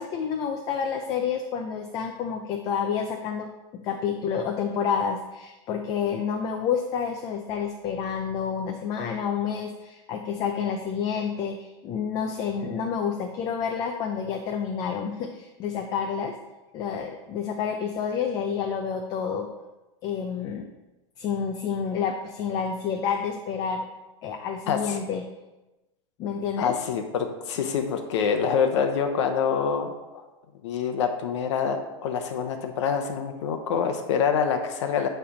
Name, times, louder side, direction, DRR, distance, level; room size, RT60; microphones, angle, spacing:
voice 1, 0.0-16.3 16.7-19.5 20.0-20.7 21.2-23.8 24.2-25.2 26.2-26.7, left 7 dB, 25° left, 4 dB, 0.4 m, -29 dB
voice 2, 24.7-25.0 26.6-30.2 30.6-35.1, left 6 dB, 70° left, 5 dB, 0.8 m, -26 dB
9.7 x 3.3 x 5.0 m, 1.1 s
supercardioid pair, 170°, 15 cm